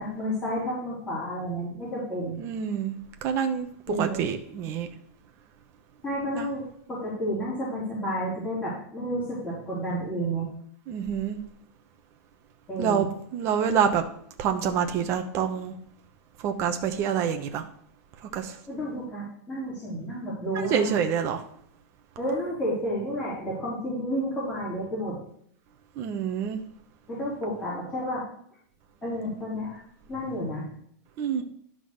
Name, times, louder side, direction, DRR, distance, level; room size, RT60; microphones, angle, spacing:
voice 1, 0.0-2.4 3.9-4.3 6.0-6.6 6.9-10.5 12.7-13.1 18.7-21.0 22.2-25.2 27.1-28.2 29.0-29.8 30.1-30.7, equal, 15° left, -9 dB, 3.2 m, -31 dB
voice 2, 2.4-3.0 3.2-4.9 6.3-6.5 10.9-11.4 12.8-14.0 14.4-15.7 16.4-17.6 18.3-18.6 20.5-21.4 26.0-26.6 31.2-31.4, right 7 dB, 30° right, 5 dB, 0.9 m, -27 dB
11.0 x 3.8 x 6.5 m, 0.66 s
supercardioid pair, 170°, 9 cm